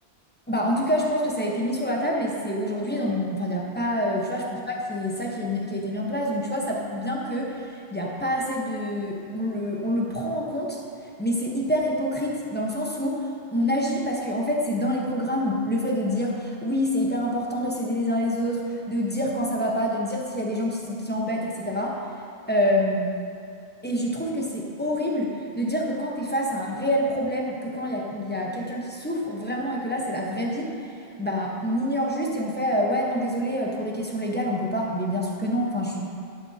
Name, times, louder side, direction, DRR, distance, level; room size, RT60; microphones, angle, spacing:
voice 1, 0.5-10.8 11.2-22.0 22.5-23.1 23.8-30.7 31.2-36.0, equal, 10° left, -3 dB, 1.1 m, -27 dB
11.0 x 9.8 x 2.9 m, 2.5 s
omnidirectional pair, 1.0 m